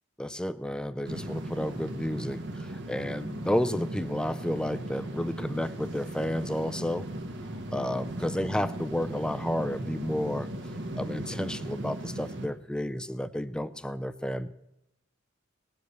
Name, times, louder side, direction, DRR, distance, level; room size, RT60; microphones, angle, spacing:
voice 1, 0.2-7.1 7.7-10.5 11.0-14.5, left 1 dB, 5° left, 12 dB, 0.5 m, -31 dB
sound 1, 1.0-12.5, right 1 dB, 60° right, 1.6 m, -37 dB
19.0 x 7.9 x 8.1 m, 0.92 s
head